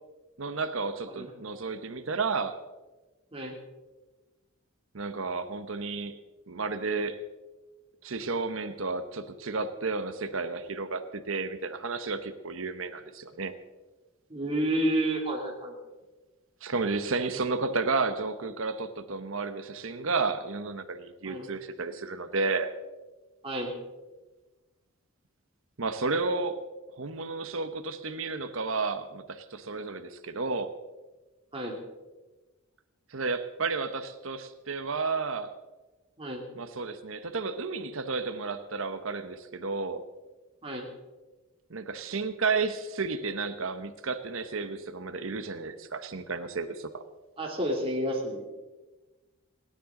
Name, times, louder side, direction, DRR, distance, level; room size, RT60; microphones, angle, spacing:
voice 1, 0.4-2.5 4.9-6.2 6.5-7.2 8.0-13.5 16.6-22.7 25.8-26.6 27.0-30.7 33.1-35.5 36.5-40.0 41.7-47.0, right 4 dB, 65° right, 9 dB, 1.0 m, -32 dB
voice 2, 14.3-15.7 21.2-21.5 23.4-23.7 31.5-31.8 36.2-36.4 40.6-40.9 47.4-48.5, right 1 dB, 25° right, -1 dB, 2.9 m, -30 dB
29.0 x 10.0 x 3.8 m, 1.2 s
head